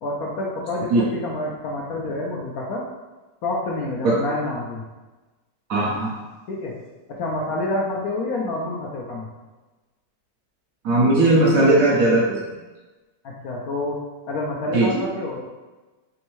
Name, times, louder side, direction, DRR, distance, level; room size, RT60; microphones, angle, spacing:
voice 1, 0.0-2.8 3.4-4.8 6.5-6.7 7.1-9.3 13.2-14.0 14.3-15.5, left 2 dB, 70° left, -3 dB, 0.9 m, -28 dB
voice 2, 5.7-6.1 10.8-12.4 14.7-14.9, right 2 dB, 65° right, -4 dB, 0.8 m, -17 dB
3.5 x 3.1 x 3.0 m, 1.2 s
omnidirectional pair, 1.9 m